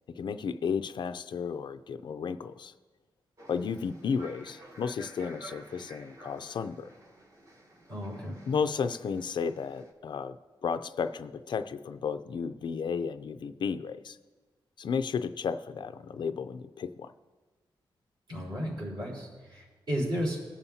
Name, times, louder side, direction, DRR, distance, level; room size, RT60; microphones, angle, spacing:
voice 1, 0.1-2.7 3.5-6.9 8.5-10.4 10.6-14.2 14.8-17.1, left 6 dB, 60° left, 11 dB, 0.4 m, -33 dB
sound 1, 3.4-9.9, right 1 dB, 35° right, 1.2 m, -51 dB
voice 2, 7.9-8.4 18.3-20.4, equal, 60° right, -5 dB, 4.0 m, -33 dB
21.0 x 7.2 x 2.7 m, 1.3 s
wide cardioid pair, 145°, 9 cm